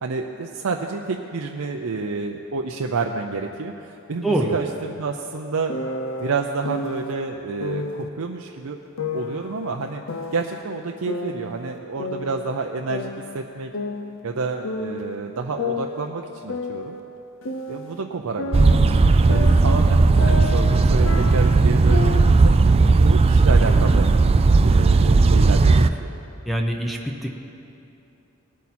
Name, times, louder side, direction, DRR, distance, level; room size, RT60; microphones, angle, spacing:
voice 1, 0.0-5.7 6.2-8.8 9.1-10.0 10.3-13.7 14.2-17.0 17.7-18.8 19.3-24.1 24.6-26.1, right 4 dB, 85° right, 2 dB, 0.6 m, -29 dB
voice 2, 4.2-4.5 26.4-27.3, right 1 dB, ahead, 0 dB, 0.7 m, -24 dB
sound 1, 5.7-7.1 7.6-8.1 9.0-10.6 11.1-12.6 12.9-15.2 15.6-18.0 18.4-22.5 22.8-23.2 23.6-24.6, left 3 dB, 65° left, 0.7 m, -32 dB
sound 2, 18.5-25.9, right 3 dB, 30° right, 0.3 m, -16 dB
19.0 x 8.4 x 4.3 m, 2.8 s
head